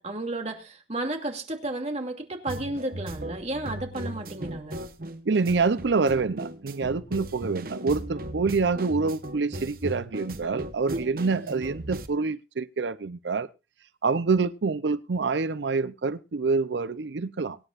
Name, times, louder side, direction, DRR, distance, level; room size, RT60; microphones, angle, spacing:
voice 1, 0.0-4.8 10.9-11.0, right 2 dB, 40° right, 2.5 m, -33 dB
sound 1, 2.5-12.1, right 1 dB, 55° right, 1.1 m, -37 dB
voice 2, 5.3-13.5 14.0-17.6, right 4 dB, 80° right, 0.6 m, -26 dB
23.5 x 9.9 x 2.5 m
head